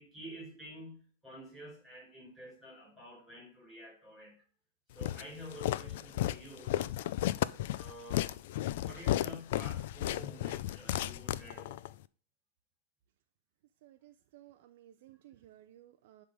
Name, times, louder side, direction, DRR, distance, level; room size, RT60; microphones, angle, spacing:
voice 1, 0.0-4.4 4.9-6.9 7.8-8.4 8.8-11.8, equal, 5° right, -2 dB, 5.2 m, -49 dB
Walk footsteps, 5.0-11.9, left 13 dB, 50° left, 0.3 m, -34 dB
voice 2, 13.8-16.3, right 13 dB, 50° right, 8 dB, 0.5 m, -57 dB
10.0 x 3.7 x 6.3 m, 0.43 s
supercardioid pair, 170°, 0 cm